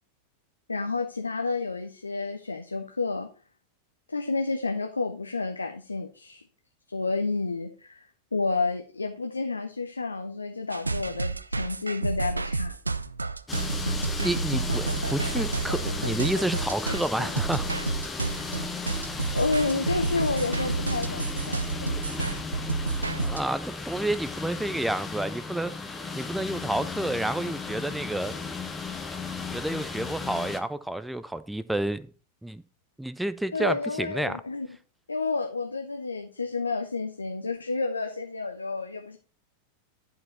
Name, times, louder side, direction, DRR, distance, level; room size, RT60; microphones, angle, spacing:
voice 1, 0.7-3.3 4.1-6.4 6.9-8.1 8.3-12.8 18.3-18.7 19.3-21.9 33.5-34.7 35.1-39.2, left 3 dB, 80° left, 0.7 m, -30 dB
sound 1, 10.7-23.4, right 3 dB, 80° right, 0.4 m, -30 dB
sound 2, 13.5-30.6, left 4 dB, 15° left, 0.9 m, -35 dB
voice 2, 14.2-17.7 22.1-22.6 23.2-28.4 29.3-32.1 32.4-32.6 33.0-34.4, right 1 dB, 5° right, 0.5 m, -30 dB
11.0 x 4.8 x 4.2 m
figure-of-eight pair, 90°, 0 cm